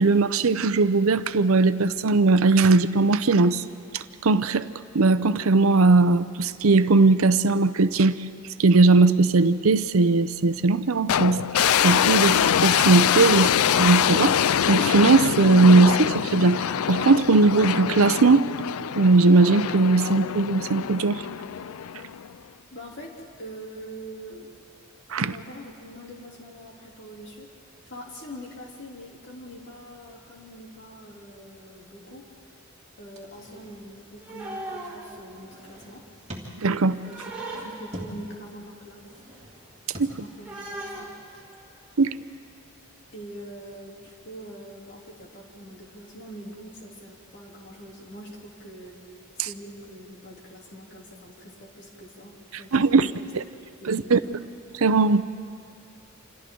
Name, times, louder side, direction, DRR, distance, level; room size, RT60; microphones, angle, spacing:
voice 1, 0.0-3.6 3.9-4.7 4.9-8.2 8.6-11.4 11.8-14.3 14.7-18.5 19.0-21.3 25.1-25.3 36.6-37.0 40.0-40.1 42.0-42.2 52.7-53.1 53.3-53.4 53.9-54.2 54.8-55.2, right 3 dB, 80° right, 13 dB, 0.7 m, -19 dB
sound 1, 11.1-22.3, left 9 dB, 85° left, 0.4 m, -24 dB
voice 2, 22.7-24.5 25.2-27.5 27.8-32.6 33.0-36.1 37.0-39.1 40.2-41.4 43.1-49.0 49.3-53.3 53.8-54.4, equal, 55° left, -2 dB, 3.2 m, -43 dB
sound 2, 33.1-34.6 35.3-36.7 37.1-38.3 38.9-40.0, equal, 30° right, 2.7 m, -44 dB
sound 3, 33.5-35.9 36.2-38.2 38.6-38.7 39.0-42.1, right 2 dB, 5° right, 3.9 m, -39 dB
28.0 x 27.0 x 3.9 m, 2.5 s
head